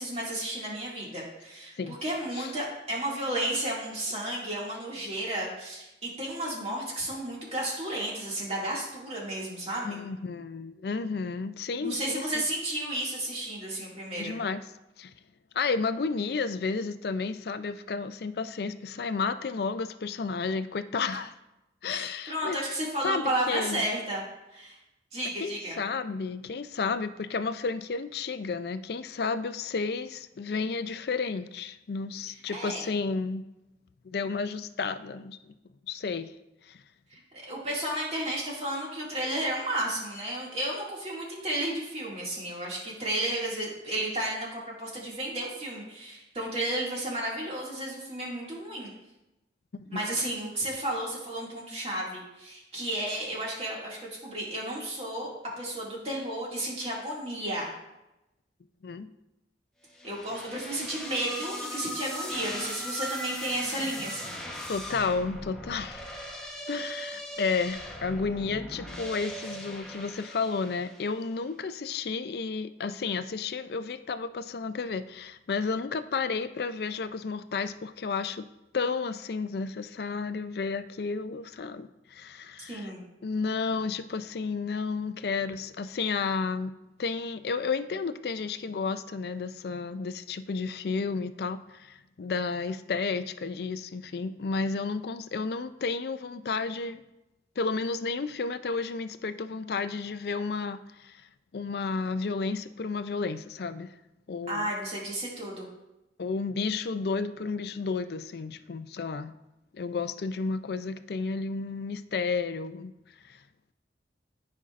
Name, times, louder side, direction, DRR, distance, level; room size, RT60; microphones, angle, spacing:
voice 1, 0.0-10.0 11.8-14.4 21.9-24.2 24.5-24.8 25.1-25.8 32.3-32.9 37.1-37.2 37.5-48.9 49.9-55.3 55.6-57.7 60.0-64.4 82.7-83.0 104.5-105.7, right 1 dB, 35° right, -4 dB, 2.2 m, -33 dB
voice 2, 9.8-12.4 14.2-14.6 15.0-15.1 15.5-21.3 21.8-22.6 23.0-23.8 25.4-33.4 34.0-35.5 35.9-36.3 36.7-36.8 49.7-50.1 58.8-59.1 64.7-66.1 66.7-78.4 78.7-82.9 83.2-86.7 87.0-97.0 97.6-101.2 101.5-103.9 104.3-104.7 106.2-109.3 109.7-112.9 113.2-113.4, left 4 dB, 60° left, 12 dB, 0.4 m, -32 dB
sound 1, 60.0-71.2, equal, 5° left, 1.0 m, -39 dB
14.0 x 5.3 x 2.5 m, 0.94 s
head